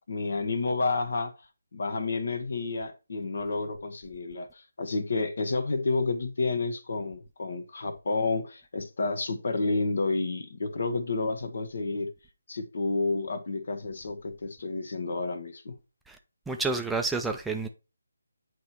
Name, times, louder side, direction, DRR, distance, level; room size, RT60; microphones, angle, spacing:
voice 1, 0.1-1.3 1.7-12.1 12.5-15.8, left 3 dB, 55° left, 1.2 m, -30 dB
voice 2, 16.5-17.7, right 3 dB, 5° right, 0.5 m, -29 dB
9.3 x 3.2 x 4.5 m
figure-of-eight pair, 150°, 0 cm